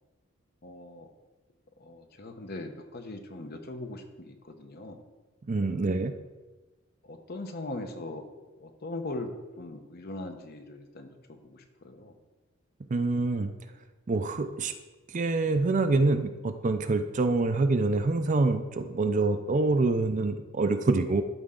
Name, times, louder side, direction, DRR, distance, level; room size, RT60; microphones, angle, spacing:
voice 1, 0.6-1.1 1.8-5.0 5.8-6.0 7.0-8.3 8.6-9.3 9.6-12.1, left 2 dB, 50° left, 6 dB, 0.9 m, -40 dB
voice 2, 5.5-6.1 12.9-13.5 14.1-14.7 15.1-21.2, right 3 dB, 35° right, 9 dB, 0.5 m, -26 dB
12.5 x 4.4 x 3.8 m, 1.2 s
head